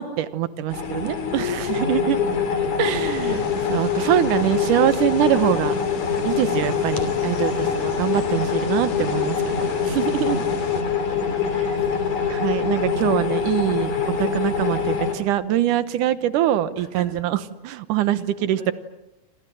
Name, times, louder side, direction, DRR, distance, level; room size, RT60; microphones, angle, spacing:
voice 1, 0.0-2.2 2.8-3.4 3.7-5.7 6.2-9.4 9.9-10.4 11.5-11.8 12.3-13.9 14.2-17.4 17.6-18.7, right 12 dB, 80° right, 13 dB, 2.7 m, -23 dB
sound 1, 0.7-15.1, left 6 dB, 70° left, 4.4 m, -24 dB
voice 2, 0.9-3.5 6.5-8.0 10.2-10.7 11.1-11.8 16.7-17.1 18.1-18.7, right 1 dB, 35° right, 6 dB, 6.0 m, -44 dB
sound 2, 2.8-10.8, left 5 dB, 90° left, 4.1 m, -37 dB
28.5 x 26.0 x 7.8 m, 0.97 s
omnidirectional pair, 3.6 m